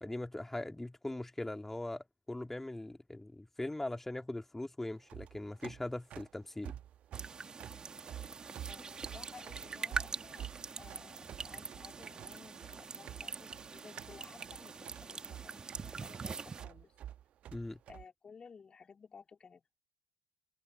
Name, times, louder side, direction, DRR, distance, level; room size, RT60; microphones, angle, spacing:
voice 1, 0.0-6.8 17.5-17.8, left 1 dB, 10° left, 2.6 m, -40 dB
sound 1, 5.0-18.0, right 11 dB, 45° right, 1.4 m, -49 dB
sound 2, 7.1-16.6, right 5 dB, 25° right, 2.8 m, -43 dB
voice 2, 8.7-17.0 17.9-19.8, left 5 dB, 30° left, 4.1 m, -56 dB
figure-of-eight pair, 60°, 3 cm